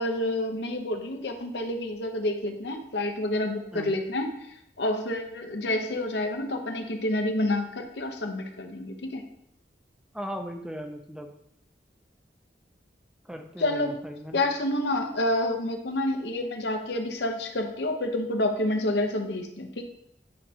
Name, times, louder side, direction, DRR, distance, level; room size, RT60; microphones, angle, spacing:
voice 1, 0.0-4.3 4.8-9.2 13.6-14.0 14.3-19.8, left 1 dB, 70° left, 5 dB, 0.8 m, -28 dB
voice 2, 10.1-11.3 13.3-14.4, equal, 5° right, 4 dB, 0.4 m, -37 dB
9.5 x 4.4 x 2.8 m, 0.77 s
head